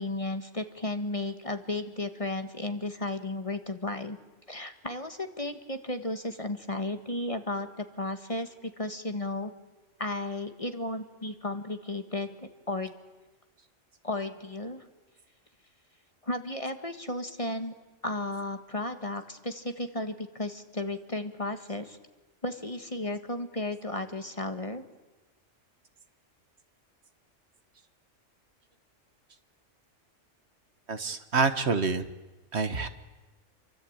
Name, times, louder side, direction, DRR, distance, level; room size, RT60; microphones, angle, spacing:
voice 1, 0.0-4.2 4.5-9.5 10.0-12.9 14.0-14.8 16.2-17.7 18.0-22.0 22.4-24.8, left 2 dB, 25° left, 8 dB, 1.6 m, -34 dB
voice 2, 30.9-32.1 32.5-32.9, right 4 dB, 60° right, 10 dB, 1.5 m, -27 dB
28.0 x 24.0 x 8.8 m, 1.2 s
omnidirectional pair, 1.3 m